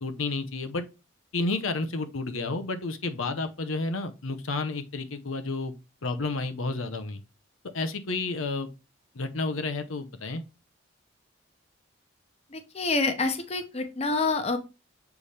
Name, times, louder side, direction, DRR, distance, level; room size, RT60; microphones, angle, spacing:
voice 1, 0.0-0.8 1.3-5.7 6.0-7.2 7.7-8.7 9.1-10.4, left 3 dB, 90° left, 0.9 m, -31 dB
voice 2, 12.5-14.6, left 3 dB, 30° left, 0.8 m, -27 dB
6.9 x 4.2 x 3.4 m
head